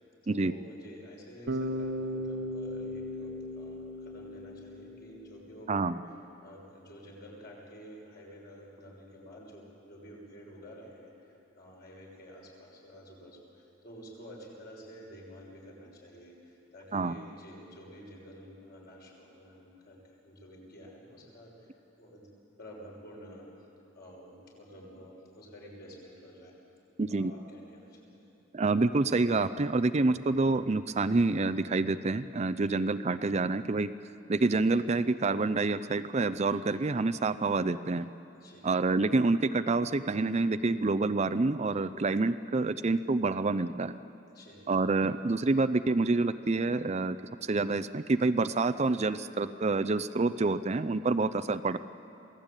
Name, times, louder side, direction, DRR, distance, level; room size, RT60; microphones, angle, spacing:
voice 1, 0.2-6.0 6.4-22.3 22.6-23.4 23.9-26.5 27.1-28.3 38.4-38.7 44.3-44.7, equal, 50° left, -2 dB, 6.6 m, -50 dB
Bass guitar, 1.5-5.5, equal, 60° right, 1.2 m, -37 dB
voice 2, 5.7-6.0 16.9-17.2 27.0-27.3 28.5-33.9 34.3-38.1 38.6-44.0 44.7-47.2 47.4-51.8, right 3 dB, 35° right, 11 dB, 0.5 m, -27 dB
27.0 x 17.5 x 9.0 m, 2.8 s
head